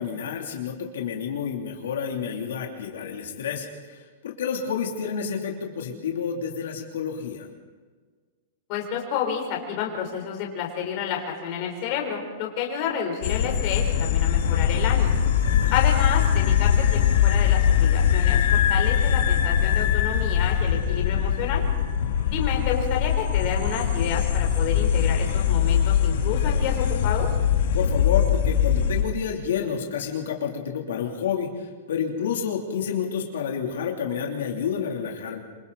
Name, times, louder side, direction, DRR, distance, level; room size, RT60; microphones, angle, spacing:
voice 1, 0.0-7.5 15.4-15.7 22.0-22.7 27.7-35.4, left 7 dB, 85° left, 0 dB, 3.3 m, -30 dB
voice 2, 8.7-15.1 15.7-21.6 22.3-27.3, left 7 dB, 35° left, 1 dB, 4.1 m, -30 dB
sound 1, 13.2-29.0, left 8 dB, 60° left, 2.3 m, -22 dB
27.0 x 24.5 x 4.2 m, 1.5 s
supercardioid pair, 175°, 0 cm